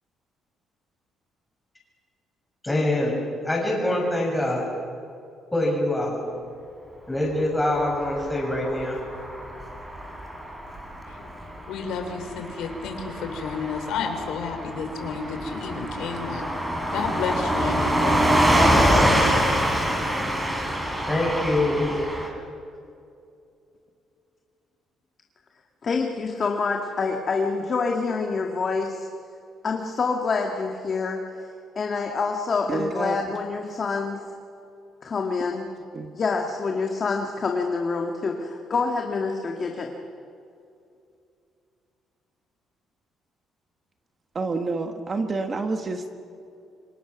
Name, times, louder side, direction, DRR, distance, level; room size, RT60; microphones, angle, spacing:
voice 1, 2.6-3.2 3.4-4.7 5.5-6.2 7.1-9.0 21.1-21.9, left 1 dB, 5° left, -2 dB, 6.6 m, -24 dB
Car passing by / Truck, 7.9-22.3, equal, 10° right, 3.7 m, -25 dB
voice 2, 11.7-16.5 16.9-18.3, left 6 dB, 85° left, 5 dB, 3.6 m, -31 dB
voice 3, 25.8-29.1 29.6-31.2 31.7-34.2 35.0-35.7 36.1-39.9, left 4 dB, 30° left, 2 dB, 1.8 m, -26 dB
voice 4, 32.7-33.2 35.9-36.1 44.3-46.1, right 3 dB, 25° right, 6 dB, 1.3 m, -28 dB
27.5 x 24.5 x 6.0 m, 2.6 s
cardioid pair, 160°, 0 cm